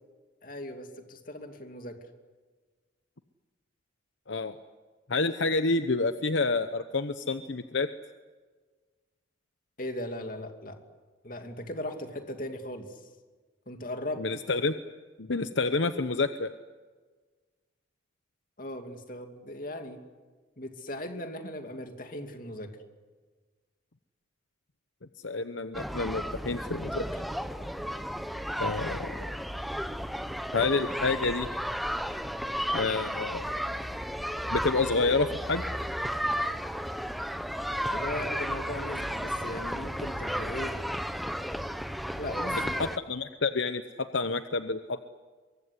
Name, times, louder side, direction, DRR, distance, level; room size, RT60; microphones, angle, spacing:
voice 1, 0.4-2.0 9.8-10.8 11.2-13.0 13.7-14.3 18.6-20.0 20.6-22.7 37.9-40.8 42.2-42.8, left 1 dB, 45° left, 5 dB, 2.6 m, -38 dB
voice 2, 5.1-7.9 14.2-14.8 15.2-16.5 25.2-27.2 28.6-29.3 30.5-31.5 32.7-33.5 34.5-35.6 42.8-45.0, left 3 dB, 70° left, 10 dB, 0.9 m, -28 dB
sound 1, 25.7-43.0, equal, ahead, 0.8 m, -33 dB
23.5 x 23.0 x 9.9 m, 1.4 s
head